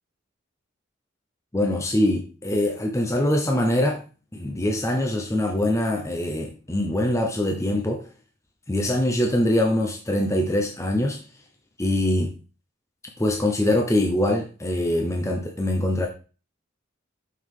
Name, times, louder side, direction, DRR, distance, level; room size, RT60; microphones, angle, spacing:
voice 1, 1.5-4.0 4.3-8.0 8.7-11.2 11.8-12.3 13.2-16.1, left 1 dB, 15° left, 2 dB, 0.7 m, -23 dB
6.0 x 5.8 x 3.7 m, 0.35 s
head